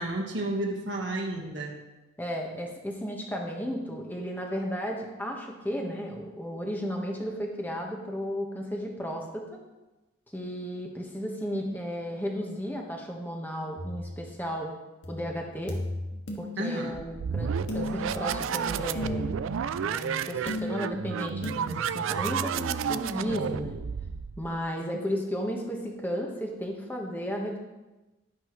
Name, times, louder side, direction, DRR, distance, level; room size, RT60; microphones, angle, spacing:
voice 1, 0.0-1.8 16.6-16.9, right 1 dB, 70° right, 0 dB, 1.5 m, -31 dB
voice 2, 2.2-9.4 10.3-14.7 15.1-15.8 16.4-19.3 19.8-23.8 24.4-27.6, equal, 10° left, 0 dB, 1.4 m, -34 dB
sound 1, 13.8-14.3 15.0-16.9 17.7-18.3 18.9-19.6 20.5-21.0 21.4-21.5, left 1 dB, 70° left, 1.9 m, -35 dB
sound 2, 16.9-24.6, right 7 dB, 90° right, 0.4 m, -31 dB
11.5 x 11.0 x 3.2 m, 1.1 s
head